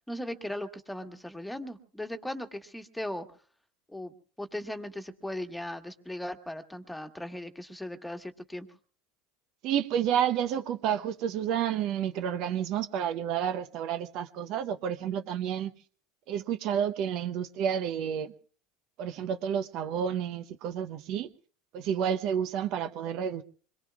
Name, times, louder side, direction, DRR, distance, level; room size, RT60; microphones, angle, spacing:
voice 1, 0.1-3.2 3.9-8.7, left 1 dB, 5° left, 1.6 m, -38 dB
voice 2, 9.6-15.7 16.3-18.3 19.0-21.3 21.7-23.4, right 9 dB, 55° right, 0.8 m, -30 dB
25.5 x 22.0 x 2.4 m
supercardioid pair, 100°, 0 cm